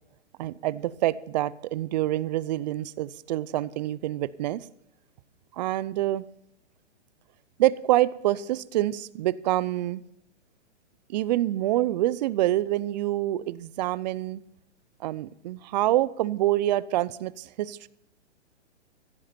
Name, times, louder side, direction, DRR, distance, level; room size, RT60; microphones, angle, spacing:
voice 1, 0.4-4.6 5.6-6.2 7.6-10.0 11.1-14.4 15.0-17.9, right 14 dB, 40° right, 20 dB, 0.6 m, -26 dB
16.0 x 14.0 x 4.4 m, 0.79 s
hypercardioid pair, 135°, 35 cm